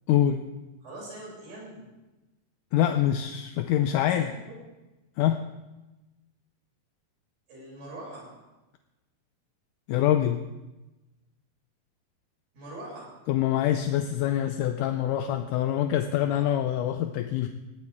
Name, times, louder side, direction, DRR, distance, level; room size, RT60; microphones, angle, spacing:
voice 1, 0.1-0.4 2.7-4.3 5.2-5.4 9.9-10.4 13.3-17.5, left 11 dB, 80° left, 7 dB, 1.9 m, -25 dB
voice 2, 0.8-1.9 4.1-4.6 7.5-8.3 12.5-13.1, right 1 dB, 70° right, -5 dB, 8.5 m, -42 dB
19.5 x 16.5 x 3.6 m, 1.1 s
omnidirectional pair, 4.3 m